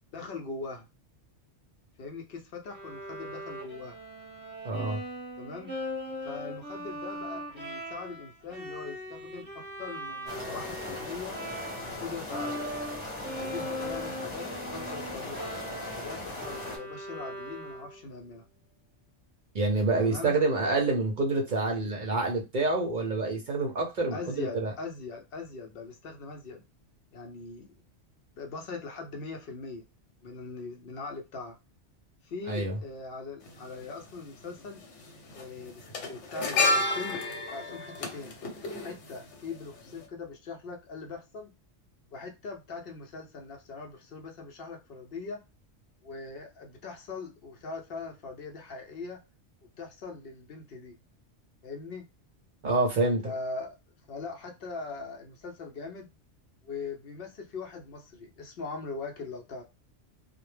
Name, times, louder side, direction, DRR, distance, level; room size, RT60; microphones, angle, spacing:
voice 1, 0.1-0.9 2.0-4.0 5.4-5.7 6.2-11.4 11.8-12.7 13.4-15.5 15.9-18.4 20.0-20.4 24.1-26.6 27.1-27.8 28.4-29.8 30.2-31.6 32.2-34.8 35.3-38.3 38.8-41.5 42.1-45.4 46.0-49.2 49.8-51.0 51.6-52.1 53.2-53.8 54.1-56.1 56.6-59.6, left 4 dB, 65° left, 3 dB, 0.7 m, -41 dB
Bowed string instrument, 2.7-12.0 12.3-18.1, equal, 10° right, 0.7 m, -40 dB
voice 2, 4.6-5.0 19.5-24.7 32.5-32.8 52.6-53.3, right 3 dB, 55° right, 1 dB, 0.6 m, -27 dB
sound 1, 10.3-16.8, left 2 dB, 30° left, 0.8 m, -39 dB
sound 2, 33.4-33.5 34.8-35.0 35.3-39.6 39.9-40.0, left 2 dB, 80° left, 1.0 m, -30 dB
2.1 x 2.1 x 3.1 m, 0.26 s
omnidirectional pair, 1.2 m